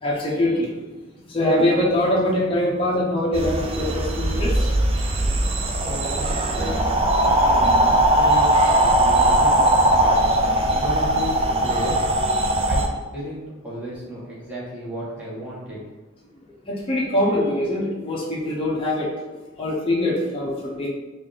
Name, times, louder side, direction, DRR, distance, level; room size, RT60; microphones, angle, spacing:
voice 1, 0.0-1.0 1.3-4.7 7.3-7.4 16.7-20.9, left 1 dB, 25° left, -5 dB, 0.6 m, -23 dB
sound 1, 3.3-12.9, right 1 dB, 30° right, 0.3 m, -19 dB
voice 2, 5.8-10.2 10.7-12.0 12.5-12.8 13.1-15.8, equal, 5° right, -7 dB, 0.9 m, -34 dB
3.4 x 2.4 x 3.8 m, 1.2 s
head